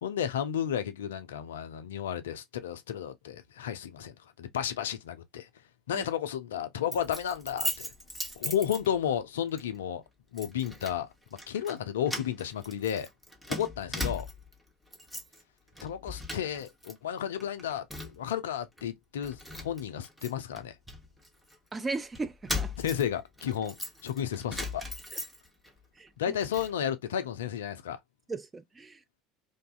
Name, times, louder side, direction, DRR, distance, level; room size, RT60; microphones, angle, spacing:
voice 1, 0.0-5.5 5.9-7.9 8.4-10.0 10.3-11.1 11.5-13.1 13.5-14.3 15.8-17.9 18.1-20.8 22.8-23.8 24.0-24.8 26.2-28.0, left 9 dB, 70° left, 0.3 m, -32 dB
Keys jangling, 6.9-9.2 9.6-9.8 10.4-11.0 11.3-11.8 12.1-14.5 14.9-15.4 15.7-16.9 17.2-18.3 18.8-18.9 19.2-21.6 22.1-25.7 26.1-26.7, left 1 dB, 5° right, 0.9 m, -38 dB
voice 2, 21.7-22.7 25.1-25.2 26.0-26.4 28.3-29.0, right 3 dB, 20° right, 0.4 m, -37 dB
2.6 x 2.3 x 2.2 m
figure-of-eight pair, 65°, 0 cm